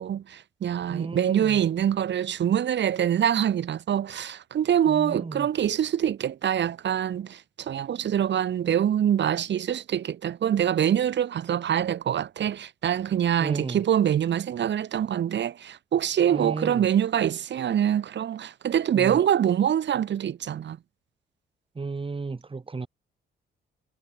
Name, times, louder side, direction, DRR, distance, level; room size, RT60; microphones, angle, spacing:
voice 1, 0.0-20.8, right 9 dB, 65° right, 6.6 m, -25 dB
voice 2, 0.9-1.6 4.9-5.5 13.4-13.8 16.3-16.9 19.0-19.2 21.7-22.9, right 4 dB, 25° right, 4.8 m, -33 dB
cardioid pair, 90°, 20 cm